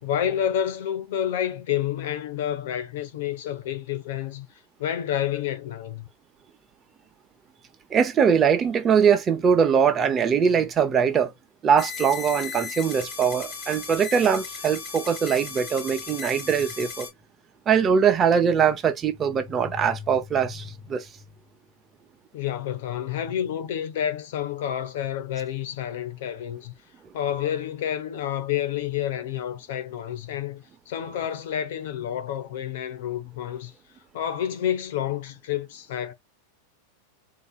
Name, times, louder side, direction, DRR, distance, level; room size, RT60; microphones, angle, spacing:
voice 1, 0.0-4.5 4.8-6.1 22.3-26.7 27.1-33.7 34.1-36.1, left 10 dB, 70° left, 1.1 m, -29 dB
voice 2, 7.9-11.3 11.6-17.1 17.7-21.1, right 7 dB, 25° right, 0.7 m, -22 dB
sound 1, 11.8-17.1, left 5 dB, 30° left, 3.0 m, -36 dB
4.1 x 2.9 x 2.3 m
supercardioid pair, 135°, 0 cm